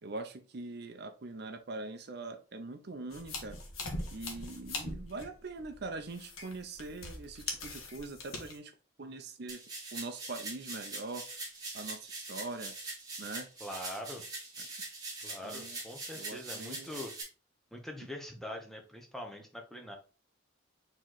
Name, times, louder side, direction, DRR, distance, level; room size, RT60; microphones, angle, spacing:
voice 1, 0.0-3.6 4.1-8.7 9.0-9.6 9.9-11.2 11.7-12.7 13.2-13.5 14.6-14.7 15.4-15.8 16.1-17.0, right 3 dB, 50° right, 6 dB, 0.6 m, -42 dB
sound 1, 3.1-8.6, left 2 dB, 85° left, 1.2 m, -42 dB
sound 2, 9.5-17.2, right 3 dB, 20° right, 1.5 m, -43 dB
voice 2, 13.6-14.2 15.2-17.1 17.7-20.0, left 1 dB, ahead, 2 dB, 0.7 m, -43 dB
4.5 x 3.1 x 3.8 m, 0.35 s
head